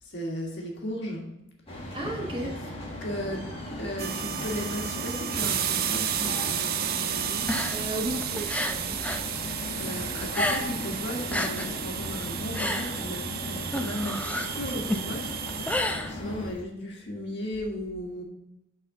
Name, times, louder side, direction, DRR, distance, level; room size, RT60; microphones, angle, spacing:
voice 1, 0.0-1.3 2.4-2.5 3.0-3.5 3.8-7.5 9.7-15.3 16.0-18.2, left 1 dB, 60° left, 0 dB, 1.6 m, -35 dB
sound 1, 1.7-16.5, left 1 dB, 30° left, 1.3 m, -37 dB
voice 2, 1.9-2.5 7.7-9.0, right 1 dB, 25° right, 0 dB, 1.1 m, -34 dB
sound 2, 4.0-15.8, right 9 dB, 45° right, 0.5 m, -32 dB
sound 3, 7.4-9.3 9.6-10.9 11.2-16.6, left 1 dB, 5° left, 0.4 m, -31 dB
6.3 x 4.1 x 5.8 m, 0.87 s
head